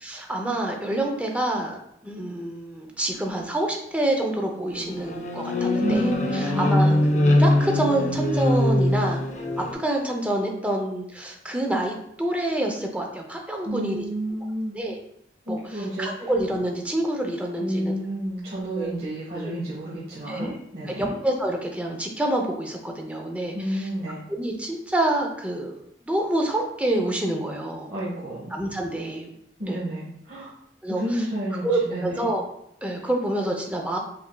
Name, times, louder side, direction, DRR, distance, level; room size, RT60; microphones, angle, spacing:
voice 1, 0.0-1.8 2.0-9.2 9.6-14.0 14.7-15.0 15.5-18.0 18.8-18.9 19.4-19.5 20.3-20.6 21.0-23.9 24.3-25.8 26.0-27.9 28.5-29.3 29.7-29.8 30.8-31.3 31.5-32.5 32.8-34.0, right 1 dB, 10° right, 1 dB, 0.6 m, -27 dB
sound 1, 4.7-9.7, left 1 dB, 40° left, 0.6 m, -22 dB
voice 2, 5.8-7.3 13.6-14.7 15.4-16.1 17.6-21.1 23.5-24.2 27.9-28.5 29.6-30.5 30.9-32.3, right 1 dB, 55° right, -8 dB, 1.1 m, -30 dB
5.6 x 3.5 x 2.3 m, 0.74 s
head